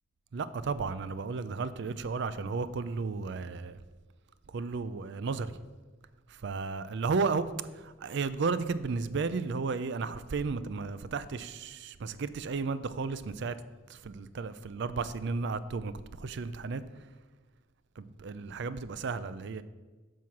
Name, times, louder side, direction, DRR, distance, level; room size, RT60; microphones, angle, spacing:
voice 1, 0.3-3.8 4.5-5.5 6.3-7.5 7.8-13.6 13.9-15.9 16.2-16.8 18.0-19.6, right 4 dB, 60° right, 0.4 m, -33 dB
7.6 x 5.6 x 5.8 m
head